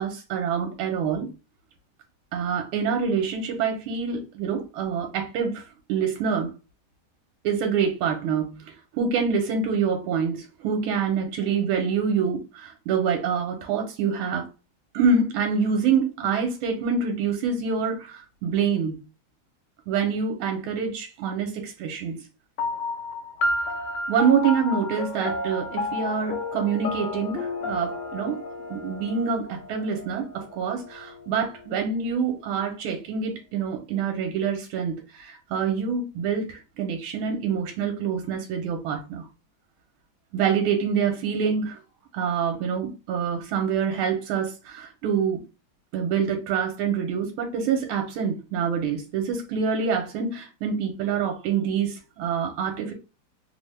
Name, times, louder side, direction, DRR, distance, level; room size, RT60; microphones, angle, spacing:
voice 1, 0.0-1.3 2.3-5.6 5.9-6.5 7.4-14.5 14.9-19.0 19.9-22.2 24.1-28.4 28.7-39.3 40.3-41.8 42.1-45.4 45.9-52.9, right 6 dB, 80° right, 1.4 m, -26 dB
sound 1, 22.6-31.4, left 2 dB, 75° left, 0.9 m, -31 dB
3.4 x 2.0 x 3.1 m
omnidirectional pair, 2.3 m